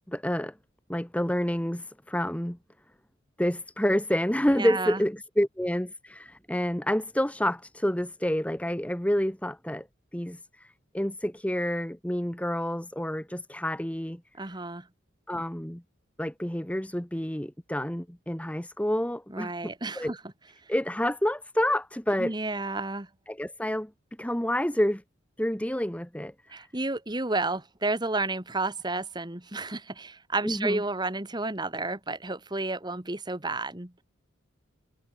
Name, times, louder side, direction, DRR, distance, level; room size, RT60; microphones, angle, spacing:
voice 1, 0.1-0.5 0.9-2.6 3.4-9.9 10.1-14.2 15.3-15.8 16.2-20.2 20.7-22.3 23.3-23.9 24.2-25.0 25.4-26.6 30.4-30.8, equal, 5° left, 1.3 m, -28 dB
voice 2, 4.5-5.0 14.4-14.9 19.3-20.2 22.2-23.1 26.5-33.9, right 2 dB, 20° right, 1.7 m, -31 dB
head